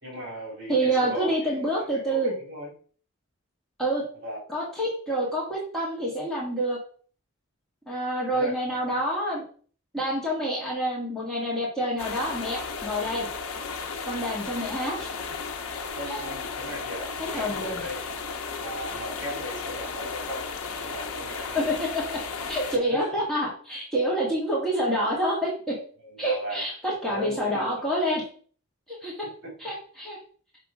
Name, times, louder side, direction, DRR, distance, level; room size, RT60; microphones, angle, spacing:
voice 1, 0.0-1.6 1.9-2.7 4.2-4.4 8.3-8.9 15.9-18.0 18.6-21.6 22.9-23.2 26.0-26.7 27.1-27.7 29.4-29.5, equal, 50° right, -2 dB, 3.1 m, -37 dB
voice 2, 0.7-2.4 3.8-4.0 4.5-6.8 7.9-9.4 9.9-13.3 14.0-15.1 16.1-16.2 17.3-17.8 21.5-22.2 22.5-25.8 26.2-28.2 28.9-29.3 29.6-30.2, right 1 dB, ahead, -6 dB, 1.8 m, -27 dB
sound 1, 12.0-22.8, left 5 dB, 90° left, 0.8 m, -34 dB
5.9 x 3.5 x 4.9 m, 0.43 s
head